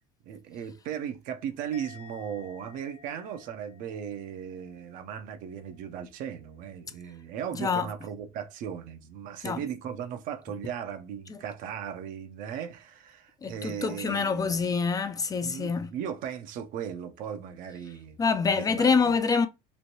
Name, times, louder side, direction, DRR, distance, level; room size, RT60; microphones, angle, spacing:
voice 1, 0.2-14.5 15.4-18.2 18.5-19.1, right 8 dB, 65° right, 0.6 m, -37 dB
Musical instrument, 1.7-5.1 5.4-5.8, left 6 dB, 80° left, 0.7 m, -53 dB
voice 2, 7.5-7.9 9.4-9.6 11.3-11.4 13.4-15.9 18.2-19.5, left 5 dB, 25° left, 0.3 m, -26 dB
3.1 x 2.5 x 2.8 m
supercardioid pair, 95°, 15 cm